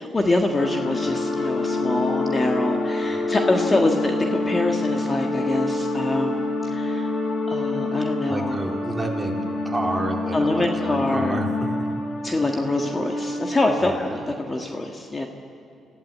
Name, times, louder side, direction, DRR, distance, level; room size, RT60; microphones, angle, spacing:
voice 1, 0.0-7.1 7.5-8.6 10.3-11.4 12.2-15.3, left 2 dB, 25° left, 2 dB, 1.6 m, -25 dB
sound 1, 0.5-14.2, left 2 dB, 50° left, 4.4 m, -27 dB
voice 2, 8.3-11.9 13.8-14.1, right 2 dB, 10° right, 0 dB, 3.5 m, -30 dB
26.0 x 15.5 x 8.6 m, 2.5 s
cardioid pair, 90°, 0 cm